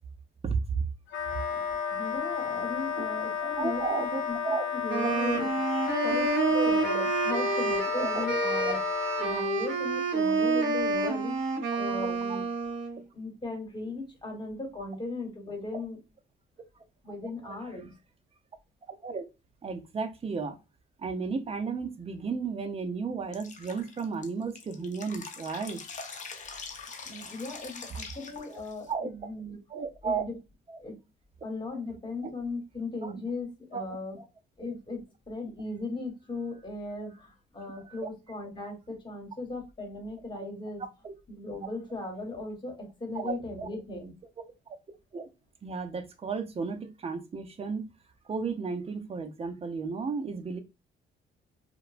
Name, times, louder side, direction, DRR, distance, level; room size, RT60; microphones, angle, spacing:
voice 1, 0.4-0.8 3.0-3.2 3.6-4.7 5.0-5.2 6.5-6.8 8.0-8.2 8.7-8.8 12.0-12.1 17.5-17.6 18.9-19.2 19.6-20.6 21.0-25.8 28.5-29.1 29.7-30.2 30.7-30.8 32.2-32.3 33.0-33.1 33.7-34.2 37.7-38.1 41.0-41.1 43.1-43.7 45.1-45.3 45.6-47.8 48.3-50.6, right 5 dB, 30° right, 0.5 m, -34 dB
Wind instrument woodwind instrument, 1.1-9.4, left 7 dB, 85° left, 0.5 m, -32 dB
voice 2, 1.5-4.4 4.8-8.8 9.2-12.4 13.1-16.0 17.0-17.9 27.0-29.6 30.0-30.4 30.8-31.0 31.4-34.2 34.6-35.0 35.3-40.8 41.3-44.1, left 2 dB, 20° left, 1.2 m, -37 dB
Wind instrument woodwind instrument 2, 4.9-13.0, right 3 dB, 70° right, 0.8 m, -28 dB
Drip, 23.3-28.9, left 5 dB, 40° left, 0.6 m, -43 dB
2.9 x 2.2 x 2.4 m
cardioid pair, 90°, 20 cm